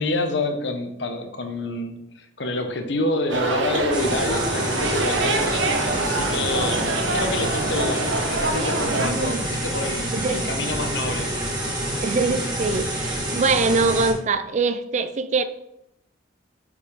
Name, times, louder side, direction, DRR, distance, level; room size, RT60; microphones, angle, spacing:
voice 1, 0.0-11.3, left 2 dB, 65° left, 6 dB, 1.0 m, -28 dB
sound 1, 3.3-9.1, right 2 dB, 85° right, 1.0 m, -25 dB
sound 2, 3.9-14.1, right 1 dB, 25° right, 1.8 m, -27 dB
voice 2, 8.9-9.5 10.1-10.5 12.0-15.4, right 4 dB, 40° right, 12 dB, 0.4 m, -23 dB
5.2 x 5.1 x 5.1 m, 0.83 s
head